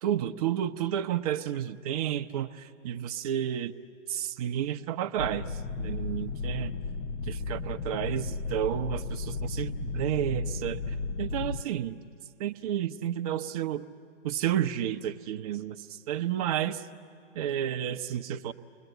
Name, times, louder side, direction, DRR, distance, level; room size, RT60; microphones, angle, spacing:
voice 1, 0.0-3.7 4.1-6.7 7.3-12.0 12.4-13.9 14.2-16.8 17.3-18.5, right 10 dB, 30° right, 9 dB, 0.7 m, -31 dB
sound 1, 5.2-11.6, left 4 dB, 50° left, 1.1 m, -34 dB
30.0 x 21.5 x 8.0 m, 2.4 s
hypercardioid pair, 135°, 38 cm